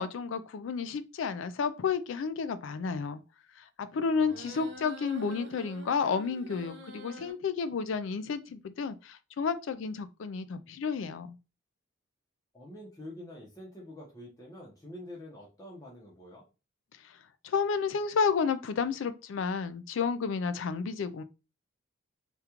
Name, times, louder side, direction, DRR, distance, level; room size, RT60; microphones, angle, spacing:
voice 1, 0.0-3.2 3.6-11.4 17.0-17.2 17.4-21.2, left 5 dB, 70° left, 0.3 m, -31 dB
voice 2, 4.1-4.7 12.5-16.4, left 1 dB, 15° left, 0.8 m, -47 dB
sound 1, 4.3-7.3, right 2 dB, 55° right, 0.5 m, -46 dB
3.5 x 2.4 x 2.9 m
head